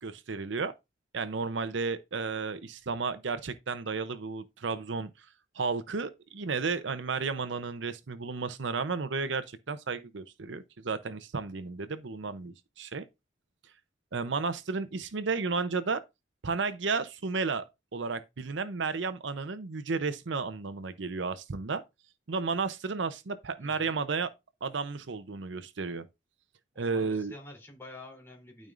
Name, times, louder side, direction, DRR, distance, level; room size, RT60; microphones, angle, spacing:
voice 1, 0.0-0.7 1.1-5.1 5.6-13.0 14.1-16.0 16.4-17.6 17.9-21.8 22.3-24.3 24.6-26.0 26.8-27.3, right 4 dB, 80° right, 0.7 m, -33 dB
voice 2, 23.6-24.0 26.7-28.7, left 2 dB, 15° left, 3.3 m, -48 dB
12.5 x 5.2 x 2.5 m
head